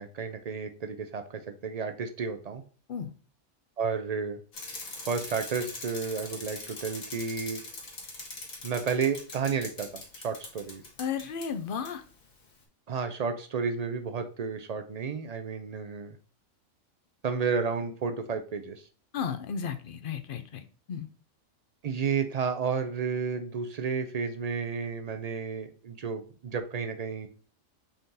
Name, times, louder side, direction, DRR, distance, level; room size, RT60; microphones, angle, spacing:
voice 1, 0.0-2.6 3.8-4.4 5.1-7.6 8.6-10.8 12.9-16.2 17.2-18.8 21.8-27.3, right 5 dB, 70° right, 7 dB, 0.3 m, -32 dB
Bicycle, 4.5-11.5 11.8-11.9, left 3 dB, 90° left, 1.9 m, -42 dB
voice 2, 11.0-12.0 19.1-21.1, left 7 dB, 55° left, 9 dB, 0.6 m, -34 dB
5.5 x 3.7 x 2.7 m, 0.40 s
omnidirectional pair, 1.4 m